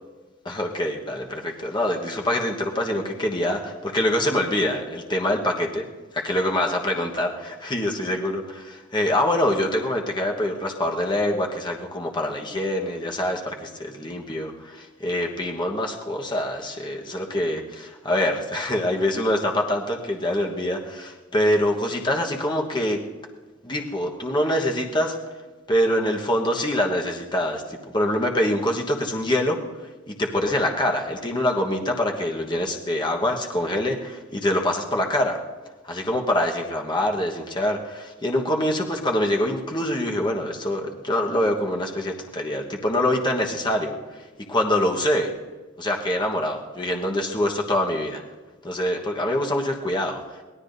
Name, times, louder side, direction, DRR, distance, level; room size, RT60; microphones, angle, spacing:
voice 1, 0.4-5.9 6.1-23.0 23.6-25.2 25.7-29.6 30.1-35.4 35.8-43.9 44.5-45.3 45.8-48.2 48.6-50.2, left 1 dB, 25° left, 1 dB, 1.2 m, -25 dB
23.5 x 17.0 x 2.7 m, 1.3 s
head